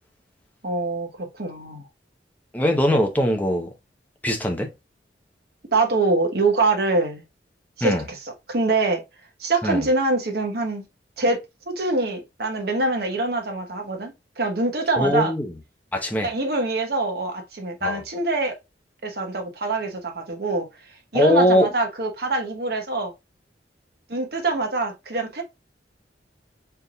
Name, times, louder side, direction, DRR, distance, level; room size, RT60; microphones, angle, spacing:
voice 1, 0.6-1.8 5.7-7.2 7.8-9.0 9.4-10.8 11.2-15.3 16.2-18.5 19.0-20.7 21.1-23.1 24.1-25.4, right 2 dB, 60° right, 1.2 m, -24 dB
voice 2, 2.5-3.7 4.2-4.7 7.8-8.0 9.6-9.8 15.0-15.5 15.9-16.3 17.8-18.0 21.1-21.7, equal, 10° left, 0.8 m, -21 dB
4.5 x 3.6 x 2.3 m
head